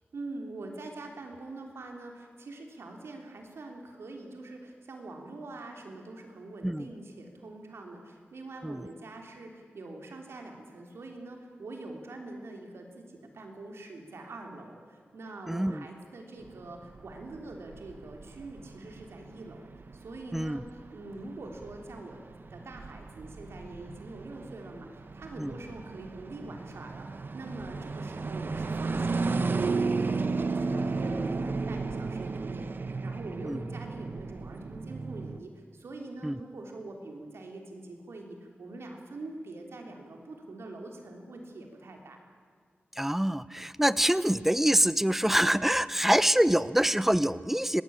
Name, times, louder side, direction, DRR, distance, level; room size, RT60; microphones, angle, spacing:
voice 1, 0.1-20.6 20.9-22.2 22.5-42.2, right 2 dB, 85° right, 2 dB, 3.5 m, -44 dB
voice 2, 15.5-15.9 20.3-20.6 25.4-25.5 33.4-33.6 36.2-36.4 43.0-47.8, right 1 dB, 5° right, 16 dB, 0.7 m, -25 dB
sound 1, 16.4-35.4, right 4 dB, 55° right, 1.0 m, -34 dB
26.0 x 18.5 x 8.9 m, 2.1 s
wide cardioid pair, 90°, 4 cm